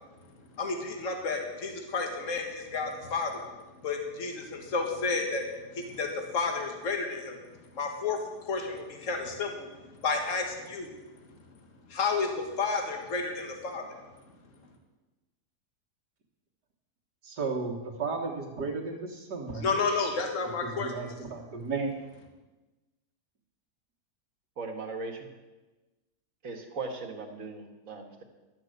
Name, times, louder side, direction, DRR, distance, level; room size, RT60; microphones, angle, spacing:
voice 1, 0.6-3.4 3.8-7.4 7.7-10.9 11.9-13.9 19.6-20.9, left 4 dB, 50° left, 3 dB, 1.9 m, -31 dB
voice 2, 17.2-19.7 20.6-21.9, right 4 dB, 80° right, -2 dB, 2.2 m, -34 dB
voice 3, 24.6-25.3 26.4-28.2, right 3 dB, 55° right, 4 dB, 1.9 m, -38 dB
12.0 x 7.6 x 7.9 m, 1.1 s
omnidirectional pair, 1.7 m